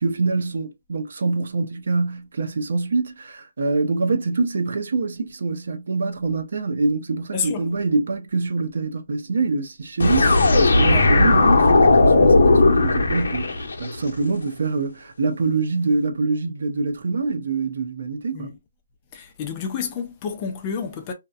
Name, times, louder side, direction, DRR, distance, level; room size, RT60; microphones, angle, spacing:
voice 1, 0.0-18.5, right 3 dB, 55° right, 0.5 m, -25 dB
voice 2, 7.3-7.7 10.9-11.1 18.3-18.6 19.1-21.1, left 6 dB, 20° left, 0.4 m, -30 dB
sound 1, 10.0-13.9, left 2 dB, 65° left, 0.8 m, -16 dB
2.7 x 2.1 x 2.3 m
hypercardioid pair, 170°, 0 cm